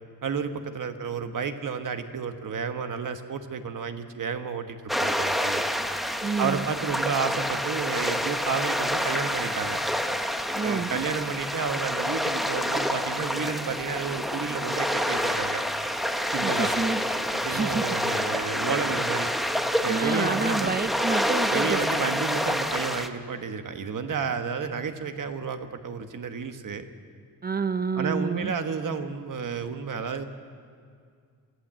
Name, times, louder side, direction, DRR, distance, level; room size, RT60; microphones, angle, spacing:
voice 1, 0.2-5.6 6.4-9.8 10.6-15.6 16.3-16.7 17.3-19.3 19.8-20.8 21.5-26.9 27.9-30.3, right 5 dB, 70° right, 8 dB, 1.3 m, -31 dB
sound 1, 4.9-23.1, equal, ahead, 0.9 m, -28 dB
voice 2, 6.2-6.7 10.5-10.9 16.4-17.0 17.5-17.9 19.9-21.8 27.4-28.5, right 4 dB, 30° right, 13 dB, 0.5 m, -28 dB
24.0 x 15.0 x 7.5 m, 2.2 s
wide cardioid pair, 150°, 33 cm